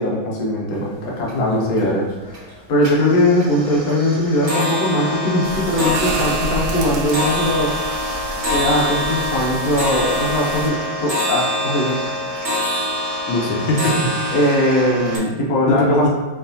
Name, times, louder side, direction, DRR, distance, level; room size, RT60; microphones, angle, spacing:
voice 1, 0.0-7.7 8.5-12.0 14.3-16.1, left 1 dB, 55° left, -4 dB, 1.1 m, -20 dB
sound 1, 0.8-0.9 1.2-1.8 2.2-2.5 2.8-15.2, left 1 dB, 40° right, 1.4 m, -25 dB
voice 2, 1.3-1.7 13.3-14.4 15.7-16.1, left 1 dB, 80° left, -1 dB, 1.5 m, -21 dB
sound 2, 5.4-10.7, right 2 dB, 70° right, 1.1 m, -30 dB
4.5 x 3.2 x 2.6 m, 1.3 s
omnidirectional pair, 2.2 m